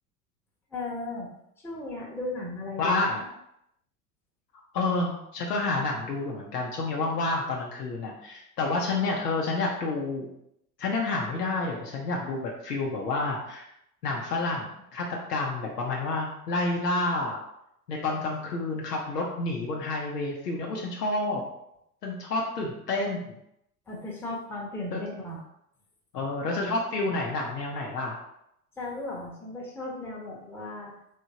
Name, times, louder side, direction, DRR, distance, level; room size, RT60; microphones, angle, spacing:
voice 1, 0.7-1.3 1.6-3.0 23.9-25.4 28.8-30.9, left 2 dB, 5° left, -4 dB, 0.9 m, -36 dB
voice 2, 2.8-3.2 4.7-10.3 10.8-13.7 14.0-17.4 17.9-21.4 22.0-23.4 24.9-25.0 26.1-28.2, left 2 dB, 85° left, -1 dB, 0.7 m, -29 dB
3.6 x 3.2 x 2.8 m, 0.79 s
figure-of-eight pair, 70°, 46 cm